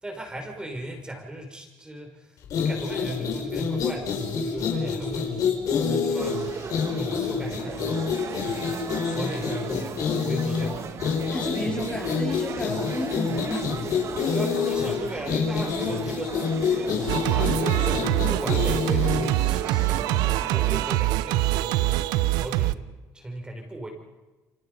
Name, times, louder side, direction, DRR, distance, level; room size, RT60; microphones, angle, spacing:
voice 1, 0.0-8.3 8.6-10.8 12.8-13.0 13.3-13.5 14.3-23.9, right 1 dB, 10° right, 2 dB, 5.6 m, -37 dB
sound 1, 2.4-19.5, left 6 dB, 55° left, 5.3 m, -27 dB
sound 2, 6.2-21.0, right 6 dB, 40° right, 1.9 m, -37 dB
voice 2, 11.3-13.7, left 1 dB, 15° left, -1 dB, 3.4 m, -32 dB
Singing, 17.1-22.7, right 16 dB, 80° right, 0.7 m, -24 dB
29.0 x 25.5 x 5.6 m, 1.1 s
cardioid pair, 115°, 7 cm